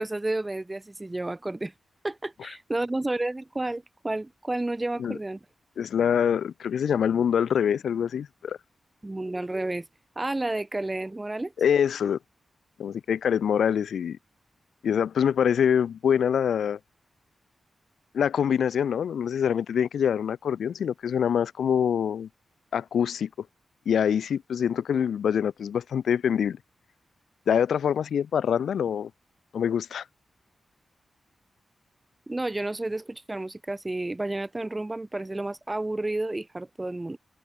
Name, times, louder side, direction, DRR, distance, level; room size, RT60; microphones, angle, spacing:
voice 1, 0.0-1.7 2.0-5.4 9.0-9.9 10.2-11.5 32.3-37.2, right 2 dB, 25° right, 1.1 m, -31 dB
voice 2, 5.8-8.6 11.6-12.2 12.8-14.2 14.8-16.8 18.1-22.3 22.7-23.3 23.9-26.6 27.5-29.1 29.5-30.0, left 8 dB, 85° left, 0.6 m, -25 dB
cardioid pair, 55°, 0 cm